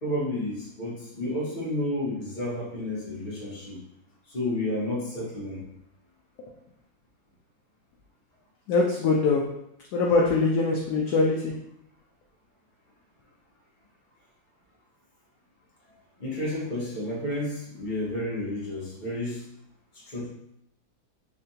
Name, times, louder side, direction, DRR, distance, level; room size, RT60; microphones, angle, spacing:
voice 1, 0.0-3.8 4.3-5.7 16.2-19.4 19.9-20.3, left 1 dB, 30° left, -6 dB, 1.1 m, -31 dB
voice 2, 8.7-9.4 9.9-11.5, left 3 dB, 75° left, -1 dB, 1.0 m, -22 dB
3.7 x 3.3 x 2.7 m, 0.80 s
omnidirectional pair, 2.1 m